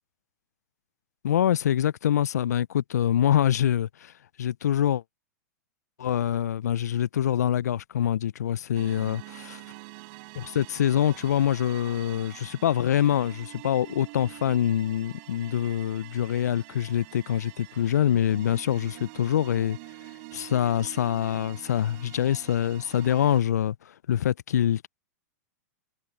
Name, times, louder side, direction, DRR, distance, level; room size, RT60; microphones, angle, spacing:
voice 1, 1.2-5.0 6.0-9.6 10.4-19.8 20.3-24.9, left 10 dB, 75° left, 0.4 m, -25 dB
sound 1, 8.7-23.4, right 32 dB, 50° right, 4.2 m, -46 dB
hypercardioid pair, 110°, 9 cm